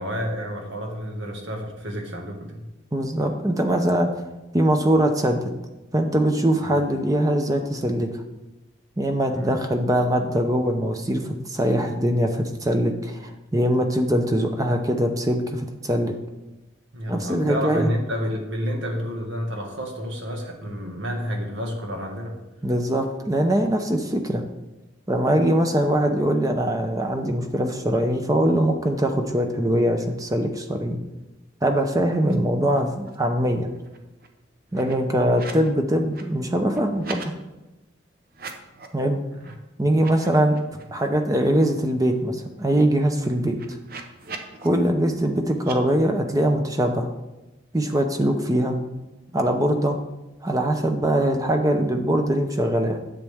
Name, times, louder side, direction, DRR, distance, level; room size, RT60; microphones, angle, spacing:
voice 1, 0.0-2.7 6.6-6.7 9.3-9.6 16.9-22.4 34.7-35.0, equal, 75° right, 1 dB, 1.8 m, -30 dB
voice 2, 2.9-4.1 4.5-5.5 5.9-8.2 9.0-16.1 17.1-17.9 22.6-24.4 25.1-31.0 31.6-33.7 34.7-37.3 38.9-39.2 39.8-40.6 40.9-43.6 44.6-47.1 47.7-48.8 49.3-50.0 50.4-53.0, right 1 dB, 15° right, 5 dB, 0.6 m, -22 dB
sound 1, 32.2-32.4 32.6-33.3 33.6-35.7 36.0-37.3 38.3-39.0 39.4-39.5 39.9-41.2 41.6-41.7 42.0-44.7 45.6-45.8, right 4 dB, 50° right, 0.9 m, -42 dB
10.0 x 7.5 x 3.5 m, 1.0 s
head